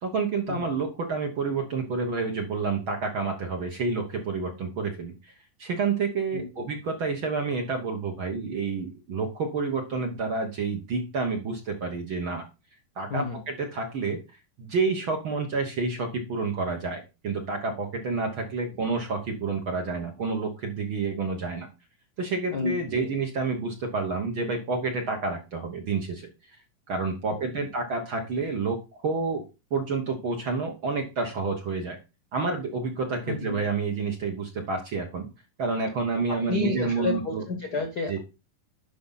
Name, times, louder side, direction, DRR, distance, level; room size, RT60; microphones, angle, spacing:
voice 1, 0.0-5.3 5.6-12.4 12.9-21.7 22.2-26.6 26.9-29.4 29.7-32.0 32.3-35.3 35.6-37.4 38.1-38.2, right 4 dB, 55° right, 3 dB, 1.4 m, -29 dB
voice 2, 6.3-6.7 13.1-13.4 22.5-23.1 27.3-27.6 33.2-33.6 36.3-38.2, left 4 dB, 85° left, 6 dB, 0.8 m, -31 dB
11.5 x 5.2 x 4.0 m, 0.28 s
omnidirectional pair, 4.0 m